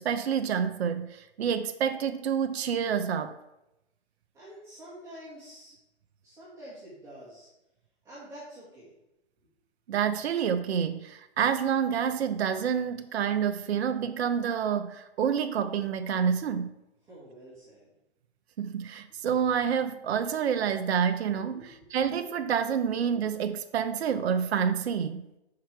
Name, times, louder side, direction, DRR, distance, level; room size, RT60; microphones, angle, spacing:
voice 1, 0.0-3.4 9.9-16.7 18.6-25.2, right 7 dB, 70° right, 0.6 m, -28 dB
voice 2, 4.3-5.7 6.2-7.5 8.0-8.9 17.0-17.9 21.5-22.0, right 1 dB, 10° right, 1.6 m, -47 dB
5.8 x 4.7 x 4.5 m
hypercardioid pair, 150°, 33 cm